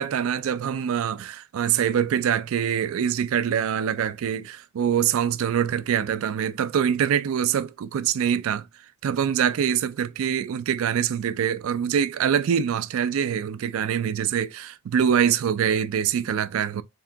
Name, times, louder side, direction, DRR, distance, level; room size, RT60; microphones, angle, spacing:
voice 1, 0.0-8.7 9.0-16.8, right 8 dB, 65° right, 0.3 m, -24 dB
3.5 x 2.8 x 3.3 m
head